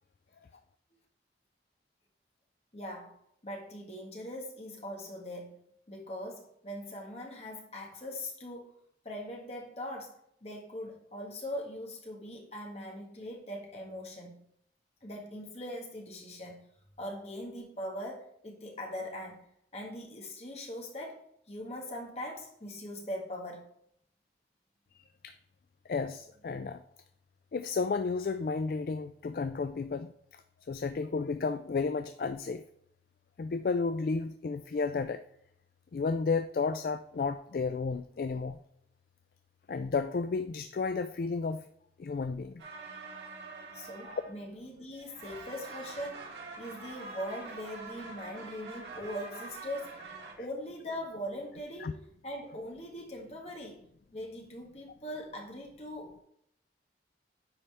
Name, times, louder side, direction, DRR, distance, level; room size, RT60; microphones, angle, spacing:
voice 1, 2.7-3.2 3.4-5.6 5.9-8.8 9.1-14.4 15.0-16.7 17.0-19.5 19.7-23.7 43.7-49.9 50.4-52.0 52.2-53.8 54.1-56.2, equal, 35° left, 1.6 m, -41 dB
voice 2, 24.9-25.4 25.9-26.8 27.5-30.1 30.7-32.6 33.4-35.2 35.9-38.6 39.7-41.6 42.0-42.6 44.0-44.2 50.4-50.5 51.8-51.9, left 4 dB, 55° left, 0.3 m, -32 dB
sound 1, 42.6-44.7 45.0-50.3, right 3 dB, 80° right, 1.9 m, -45 dB
9.9 x 4.3 x 3.4 m
head